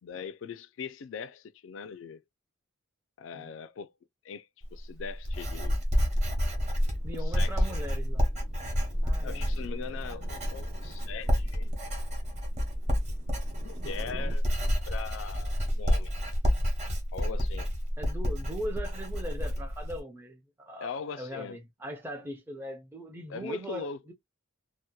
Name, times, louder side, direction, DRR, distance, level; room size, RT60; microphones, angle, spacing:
voice 1, 0.0-2.2 3.2-3.9 4.2-5.8 7.1-7.8 9.2-11.7 13.6-14.4 14.9-16.1 17.1-17.7 20.8-21.6 23.3-24.0, left 6 dB, 70° left, 0.3 m, -40 dB
Writing, 4.6-20.0, equal, 35° right, 0.9 m, -29 dB
sound 1, 6.2-14.4, right 2 dB, 75° right, 0.8 m, -51 dB
voice 2, 7.0-8.3 9.0-9.5 18.0-24.1, equal, 10° right, 0.4 m, -40 dB
2.7 x 2.1 x 2.2 m
head